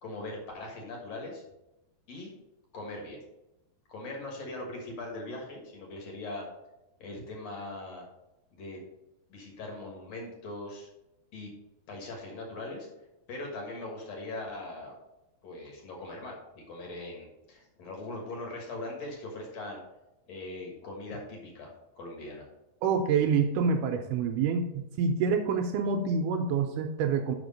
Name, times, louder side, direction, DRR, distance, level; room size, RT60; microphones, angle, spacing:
voice 1, 0.0-1.4 2.1-2.3 2.7-3.2 3.9-6.5 7.0-8.1 8.5-8.8 9.3-10.9 11.3-11.5 11.9-12.9 13.3-15.0 15.4-19.8 20.3-22.5, left 2 dB, 55° left, 0 dB, 2.2 m, -40 dB
voice 2, 22.8-27.4, right 5 dB, 90° right, 5 dB, 1.8 m, -27 dB
6.1 x 5.1 x 5.1 m, 0.93 s
omnidirectional pair, 4.3 m